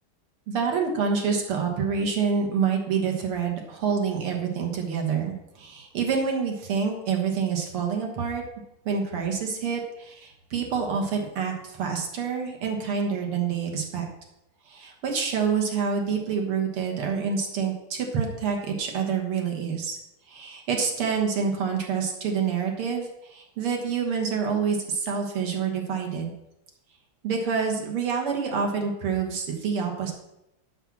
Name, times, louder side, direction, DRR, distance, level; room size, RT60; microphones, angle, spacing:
voice 1, 0.5-8.4 8.9-14.0 14.7-20.0 20.3-26.3 27.2-30.1, right 6 dB, 90° right, 2 dB, 2.4 m, -27 dB
7.8 x 6.2 x 6.0 m, 0.88 s
omnidirectional pair, 2.3 m